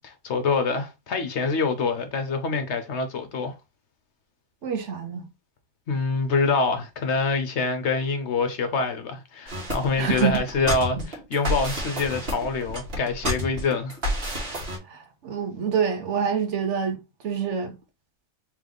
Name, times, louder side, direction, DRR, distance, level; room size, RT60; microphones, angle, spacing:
voice 1, 0.0-3.5 5.9-14.0, left 4 dB, 60° left, 0.9 m, -26 dB
voice 2, 4.6-5.2 10.0-10.4 10.9-11.0 14.8-17.8, right 7 dB, 65° right, 1.0 m, -27 dB
sound 1, 9.5-14.8, equal, 45° right, 1.5 m, -30 dB
3.4 x 3.2 x 3.7 m
omnidirectional pair, 1.4 m